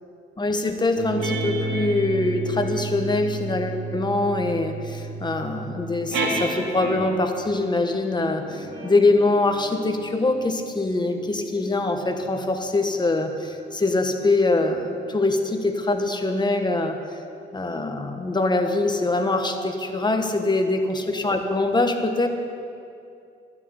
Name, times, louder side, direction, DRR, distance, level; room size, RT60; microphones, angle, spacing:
voice 1, 0.4-17.0 17.5-22.3, left 2 dB, 20° left, 5 dB, 1.4 m, -23 dB
sound 1, 0.9-7.3 8.1-13.0, right 3 dB, 90° right, 2.4 m, -32 dB
12.5 x 7.8 x 9.8 m, 2.5 s
cardioid pair, 90°, 20 cm